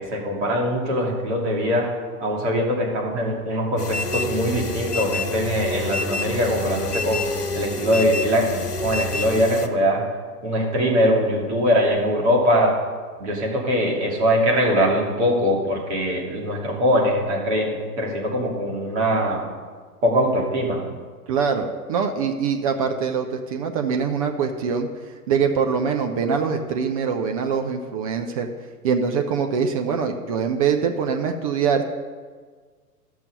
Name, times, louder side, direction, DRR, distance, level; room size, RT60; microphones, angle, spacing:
voice 1, 0.0-1.9 2.2-7.2 7.5-10.1 10.4-12.8 13.2-19.5 20.0-20.8, equal, 45° right, -1 dB, 2.7 m, -22 dB
sound 1, 3.8-9.7, left 2 dB, 80° left, 1.1 m, -28 dB
voice 2, 21.3-24.9 25.3-28.5 28.8-31.8, right 6 dB, 25° right, 4 dB, 0.5 m, -23 dB
13.5 x 6.3 x 5.4 m, 1.6 s
figure-of-eight pair, 105°, 46 cm